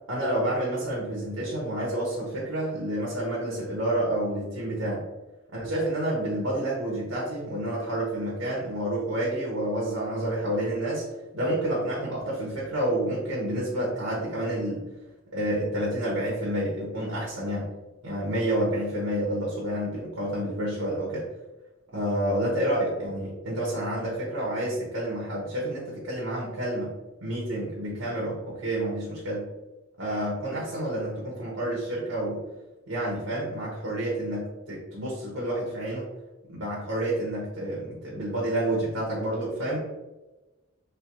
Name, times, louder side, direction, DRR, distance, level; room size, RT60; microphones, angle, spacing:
voice 1, 0.1-5.0 5.5-14.8 15.3-17.7 18.0-21.3 21.9-26.9 27.2-29.5 30.0-32.4 32.9-36.1 36.5-39.8, right 1 dB, 90° right, -4 dB, 1.1 m, -29 dB
3.3 x 3.1 x 2.9 m, 1.1 s
head